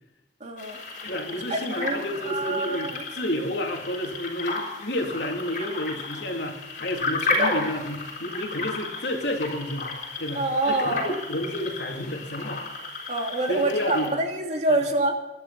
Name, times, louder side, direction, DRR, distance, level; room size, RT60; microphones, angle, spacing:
voice 1, 0.4-0.8 1.5-3.0 7.3-7.5 10.3-11.1 13.1-15.1, right 2 dB, 40° right, 2 dB, 3.1 m, -26 dB
sound 1, 0.6-14.1, left 3 dB, 50° left, 6.2 m, -33 dB
voice 2, 1.0-9.9 10.2-12.6 13.5-14.1 14.7-14.8, left 1 dB, 75° left, 2 dB, 3.1 m, -30 dB
26.5 x 12.0 x 4.2 m, 1.1 s
head